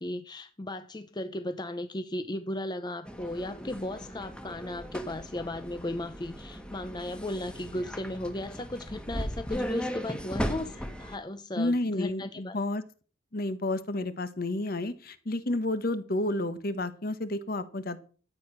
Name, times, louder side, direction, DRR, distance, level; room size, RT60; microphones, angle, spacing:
voice 1, 0.0-12.6, left 1 dB, 20° left, 0.7 m, -36 dB
sound 1, 3.1-11.2, equal, 5° left, 1.4 m, -37 dB
voice 2, 11.6-12.8 13.3-18.0, left 2 dB, 50° left, 1.3 m, -30 dB
12.5 x 8.9 x 6.1 m
head